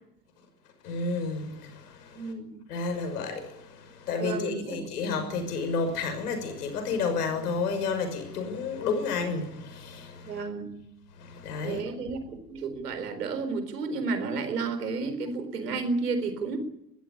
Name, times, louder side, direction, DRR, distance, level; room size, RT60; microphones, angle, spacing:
voice 1, 0.8-2.2 2.7-10.4 11.2-11.8, left 4 dB, 70° left, 6.0 m, -31 dB
voice 2, 2.2-2.6 4.2-4.8 10.2-10.8 11.6-12.2 12.5-16.6, right 4 dB, 75° right, 4.2 m, -31 dB
22.5 x 15.5 x 10.0 m
figure-of-eight pair, 70°, 48 cm